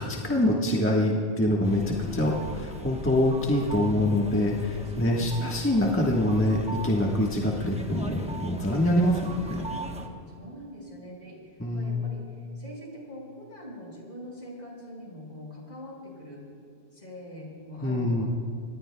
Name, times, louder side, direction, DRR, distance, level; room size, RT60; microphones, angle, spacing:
voice 1, 0.0-9.6 11.6-12.0 17.8-18.3, left 1 dB, 10° left, -3 dB, 1.2 m, -25 dB
sound 1, 1.6-10.1, right 1 dB, 5° right, 0.9 m, -40 dB
voice 2, 5.1-6.2 9.7-16.4 16.9-18.3, left 1 dB, 50° left, -3 dB, 5.0 m, -44 dB
25.0 x 20.0 x 2.2 m, 2.3 s
omnidirectional pair, 1.2 m